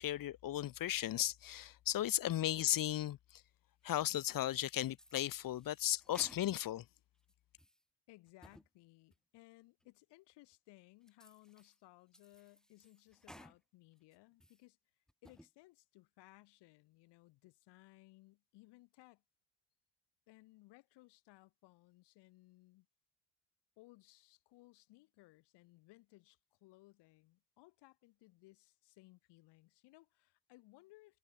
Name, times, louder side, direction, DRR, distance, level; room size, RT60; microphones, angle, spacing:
voice 1, 0.0-3.2 3.8-6.8, left 13 dB, 55° left, 0.9 m, -35 dB
sound 1, 3.9-4.5 4.9-6.8 7.2-7.8 8.3-8.7 9.1-9.2 9.8-9.9 10.5-10.6 11.1-11.8 12.1-13.6 14.0-14.6 15.1-15.5, equal, ahead, 2.4 m, -61 dB
voice 2, 8.1-14.8 15.2-19.2 20.3-22.9 23.8-31.2, left 20 dB, 80° left, 4.9 m, -62 dB
hypercardioid pair, 55°, 41 cm